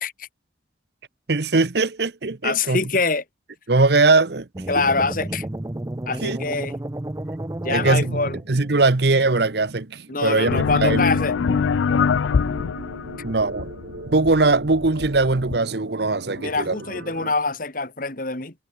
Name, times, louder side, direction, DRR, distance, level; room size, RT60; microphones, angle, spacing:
voice 1, 1.3-2.8 3.7-4.5 6.2-6.4 7.7-8.2 8.5-11.0 11.9-12.0 13.2-13.7 14.1-16.8, right 3 dB, 60° right, 0.9 m, -20 dB
voice 2, 2.4-3.2 4.7-5.4 6.1-6.8 7.6-8.4 10.1-11.3 16.4-18.5, left 3 dB, 45° left, 2.5 m, -24 dB
sound 1, 4.5-8.8, right 1 dB, 15° right, 0.5 m, -32 dB
sound 2, 8.1-17.4, right 2 dB, 80° right, 2.5 m, -40 dB
sound 3, 10.5-15.6, left 5 dB, 85° left, 0.4 m, -24 dB
head